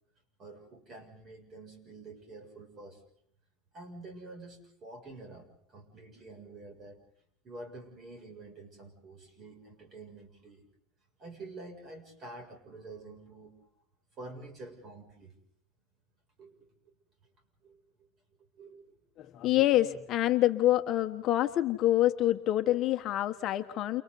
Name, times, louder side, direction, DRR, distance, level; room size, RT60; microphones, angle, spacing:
voice 1, 0.4-3.0 3.7-7.0 7.4-10.7 11.2-13.7 14.2-15.4 16.4-16.9 17.6-18.1 18.6-19.0, right 2 dB, 30° right, 4 dB, 7.4 m, -48 dB
voice 2, 19.2-24.0, left 14 dB, 40° left, 7 dB, 1.2 m, -26 dB
29.5 x 29.0 x 4.2 m, 0.66 s
supercardioid pair, 140°, 0 cm